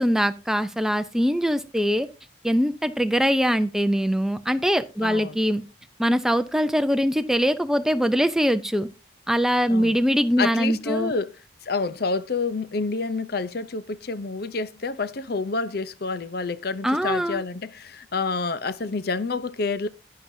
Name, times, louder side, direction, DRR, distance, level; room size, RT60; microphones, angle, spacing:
voice 1, 0.0-2.1 2.4-5.6 6.0-8.9 9.3-11.1 16.8-17.4, equal, ahead, 0.6 m, -22 dB
voice 2, 5.0-5.4 9.7-10.0 10.4-11.4 11.6-19.9, left 4 dB, 55° left, 0.6 m, -28 dB
11.5 x 9.6 x 2.7 m
head